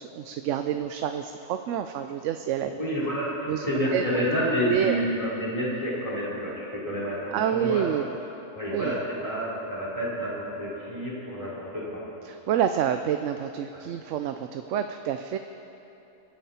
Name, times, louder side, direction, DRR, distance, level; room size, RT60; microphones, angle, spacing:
voice 1, 0.0-2.7 3.5-4.1 4.7-5.0 7.3-8.1 8.7-9.0 12.2-15.4, right 9 dB, 80° right, 8 dB, 0.9 m, -28 dB
voice 2, 2.6-7.9 8.5-12.0, equal, 25° left, -8 dB, 4.0 m, -29 dB
24.5 x 9.3 x 4.3 m, 3.0 s
omnidirectional pair, 1.3 m